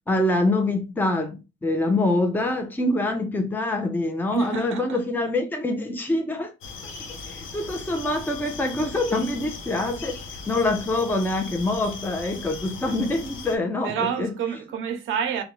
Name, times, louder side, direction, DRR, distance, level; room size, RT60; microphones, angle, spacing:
voice 1, 0.1-6.5 6.8-10.2 10.5-13.9 14.2-14.3, left 2 dB, 10° left, 0.5 m, -25 dB
voice 2, 4.3-5.0 13.8-15.4, right 7 dB, 85° right, 0.6 m, -28 dB
sound 1, 6.6-13.6, left 4 dB, 80° left, 0.7 m, -38 dB
2.5 x 2.2 x 3.0 m
cardioid pair, 90°, 20 cm